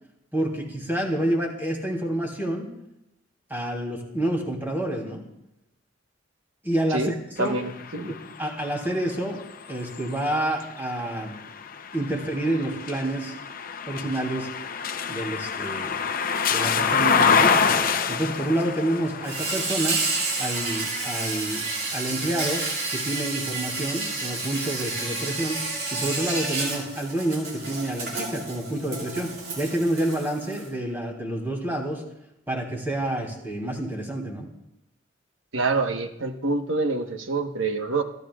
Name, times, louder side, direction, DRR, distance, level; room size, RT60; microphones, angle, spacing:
voice 1, 0.3-2.7 3.5-5.3 6.6-7.5 8.1-9.4 9.7-11.3 11.9-13.3 13.9-14.5 15.1-16.0 16.5-17.8 18.1-20.0 20.4-22.6 22.9-25.6 25.9-32.0 32.5-34.5, right 1 dB, 10° right, 0 dB, 3.0 m, -28 dB
sound 1, 7.4-23.3 23.9-25.1, left 6 dB, 45° left, 0.7 m, -28 dB
voice 2, 7.4-8.1 35.5-38.0, right 3 dB, 90° right, 5 dB, 1.2 m, -26 dB
Insect, 19.2-30.7, right 3 dB, 60° right, 5.9 m, -30 dB
28.0 x 12.0 x 2.4 m, 0.86 s
head